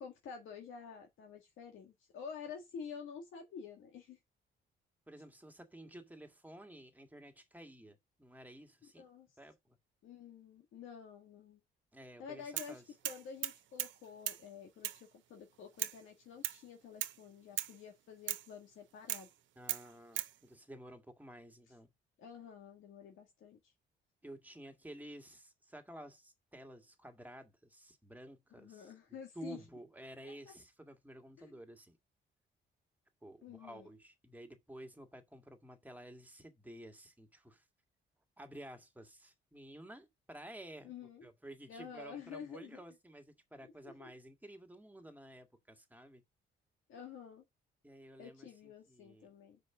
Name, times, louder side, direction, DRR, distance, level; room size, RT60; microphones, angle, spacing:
voice 1, 0.0-4.2 9.0-9.3 10.0-11.6 12.2-19.3 22.2-23.6 28.5-29.6 30.2-30.5 31.4-31.5 33.4-33.9 40.8-41.3 41.7-42.8 43.8-44.1 46.9-47.4 48.2-49.6, left 6 dB, 80° left, 1.8 m, -50 dB
voice 2, 5.1-9.1 9.4-9.8 11.9-12.8 19.6-21.9 24.2-28.9 29.4-32.0 33.2-37.6 38.4-46.2 47.8-49.3, right 1 dB, 10° right, 1.8 m, -52 dB
sound 1, 12.6-12.8 13.0-14.0 14.3-14.4 14.8-15.0 15.8-16.0 16.4-16.6 17.0-17.2 17.6-17.8 18.3-18.5 19.1-19.3 19.7-20.3, right 13 dB, 75° right, 0.7 m, -38 dB
5.9 x 5.2 x 6.0 m
cardioid pair, 90°, 20 cm